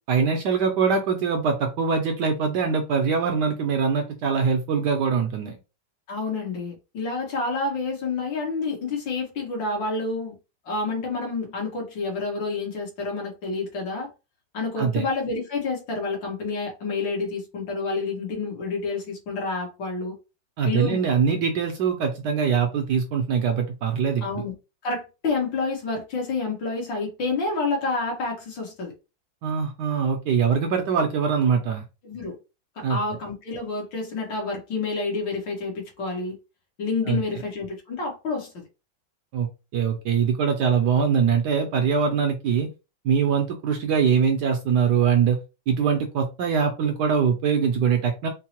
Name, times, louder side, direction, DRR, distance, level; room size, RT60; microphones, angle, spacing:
voice 1, 0.1-5.6 14.8-15.0 20.6-24.4 29.4-31.8 32.8-33.0 37.1-37.2 39.3-42.7 43.0-45.4 45.7-48.3, right 6 dB, 70° right, 1.1 m, -23 dB
voice 2, 6.1-10.3 10.7-14.1 14.5-20.2 20.6-21.0 24.2-24.5 24.8-28.9 32.0-32.4 32.8-36.4 36.8-38.7, left 3 dB, 70° left, 1.9 m, -29 dB
4.5 x 2.0 x 2.9 m
omnidirectional pair, 2.2 m